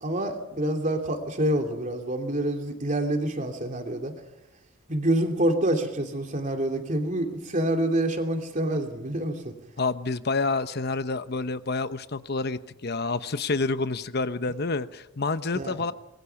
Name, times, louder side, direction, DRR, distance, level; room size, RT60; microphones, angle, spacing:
voice 1, 0.0-4.1 4.9-9.5 15.5-15.7, right 1 dB, 40° right, 4 dB, 2.9 m, -27 dB
voice 2, 9.8-15.9, left 3 dB, 55° left, 12 dB, 0.9 m, -28 dB
25.5 x 21.5 x 5.9 m, 0.92 s
head